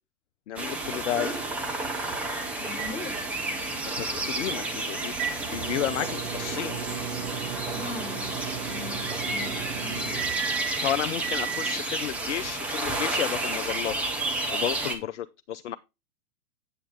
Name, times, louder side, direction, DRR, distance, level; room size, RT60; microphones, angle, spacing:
voice 1, 0.5-1.3 4.0-6.8 10.8-14.0 14.5-15.8, left 11 dB, 50° left, 0.5 m, -32 dB
sound 1, 0.6-15.0, right 2 dB, 5° right, 0.5 m, -31 dB
voice 2, 2.6-3.2 7.7-10.1, left 5 dB, 15° left, 1.2 m, -41 dB
sound 2, 2.7-11.8, right 8 dB, 60° right, 1.5 m, -36 dB
8.7 x 7.1 x 3.4 m
figure-of-eight pair, 110°, 46 cm